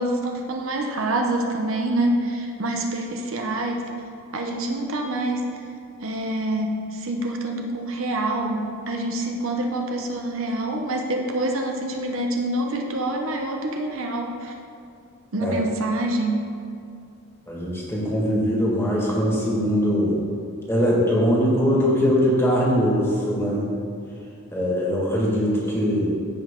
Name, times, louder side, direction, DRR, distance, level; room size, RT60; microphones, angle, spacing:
voice 1, 0.0-3.9 4.3-5.6 6.0-14.5 15.3-16.4, right 1 dB, 65° right, 2 dB, 0.8 m, -26 dB
voice 2, 17.5-20.2 20.7-23.7 24.5-26.1, equal, 10° left, -5 dB, 1.9 m, -21 dB
14.5 x 5.4 x 3.7 m, 2.4 s
head